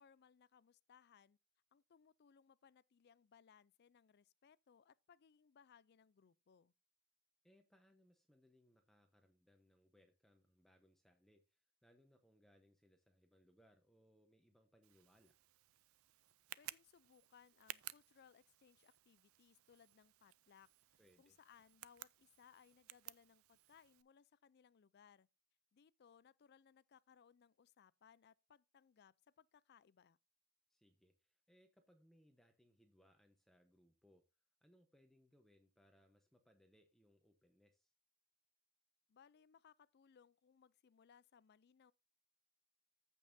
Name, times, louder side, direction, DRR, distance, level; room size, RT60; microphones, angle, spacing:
voice 1, 0.0-1.4 1.7-6.7 16.6-25.3 25.7-30.2 39.1-41.9, left 7 dB, 45° left, 0.4 m, -68 dB
voice 2, 7.4-15.4 21.0-21.4 30.7-34.2 34.6-37.9, equal, ahead, 0.9 m, -72 dB
Tick, 14.8-24.0, right 15 dB, 70° right, 0.4 m, -57 dB
15.0 x 5.4 x 2.6 m
head